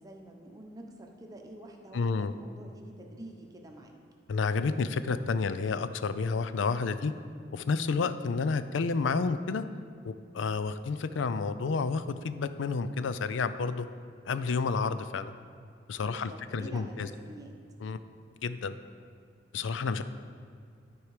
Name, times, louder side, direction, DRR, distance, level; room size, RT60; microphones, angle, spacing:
voice 1, 0.0-3.9 16.0-17.5, right 1 dB, 20° right, 1 dB, 0.9 m, -47 dB
voice 2, 1.9-2.3 4.3-7.1 7.5-9.6 10.0-13.9 14.3-15.3 15.9-17.1 17.8-18.0 18.4-18.7 19.5-20.0, left 4 dB, 90° left, 12 dB, 0.4 m, -30 dB
12.5 x 4.7 x 4.9 m, 2.3 s
head